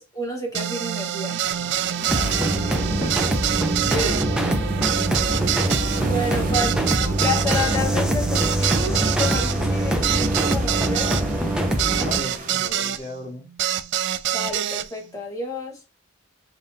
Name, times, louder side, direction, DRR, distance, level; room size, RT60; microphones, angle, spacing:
voice 1, 0.1-1.4 3.9-4.2 6.0-11.2 14.3-15.8, left 2 dB, 15° left, 1.3 m, -30 dB
sound 1, 0.5-13.0 13.6-14.9, right 11 dB, 55° right, 0.3 m, -26 dB
sound 2, 1.4-12.6, right 1 dB, 40° right, 0.8 m, -38 dB
voice 2, 2.1-3.1 3.8-4.2 12.0-13.4, equal, 40° left, 2.6 m, -37 dB
sound 3, 2.1-12.2, right 1 dB, 5° right, 0.5 m, -23 dB
5.0 x 2.7 x 2.7 m
head